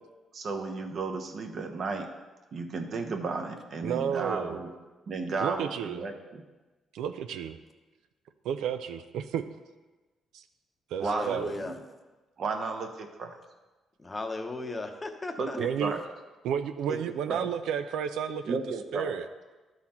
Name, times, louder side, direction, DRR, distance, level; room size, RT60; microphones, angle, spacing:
voice 1, 0.3-2.1 2.5-4.7 5.1-6.4 11.0-11.7 12.4-13.3 15.4-16.0 17.3-17.5 18.4-19.2, right 4 dB, 55° right, 4 dB, 1.0 m, -33 dB
voice 2, 3.8-4.6 5.4-6.0 6.9-7.6 8.4-9.4 10.3-10.4 10.9-11.5 15.6-16.0 16.4-18.6 18.9-19.3, right 8 dB, 85° right, 9 dB, 0.4 m, -32 dB
voice 3, 11.0-11.8 14.0-15.6, left 2 dB, 25° left, 6 dB, 0.8 m, -36 dB
12.0 x 4.1 x 4.3 m, 1.2 s
cardioid pair, 90°, 0 cm